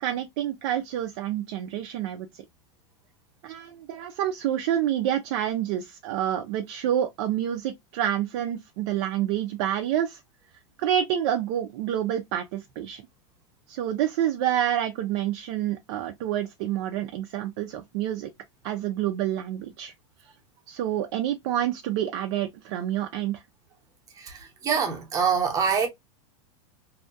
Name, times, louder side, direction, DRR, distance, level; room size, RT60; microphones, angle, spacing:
voice 1, 0.0-2.3 3.4-10.2 10.8-13.0 13.7-18.3 18.6-19.9 20.7-23.4, right 11 dB, 55° right, 0.5 m, -28 dB
voice 2, 24.1-25.9, right 6 dB, 20° right, 0.8 m, -25 dB
2.7 x 2.2 x 2.5 m
supercardioid pair, 145°, 16 cm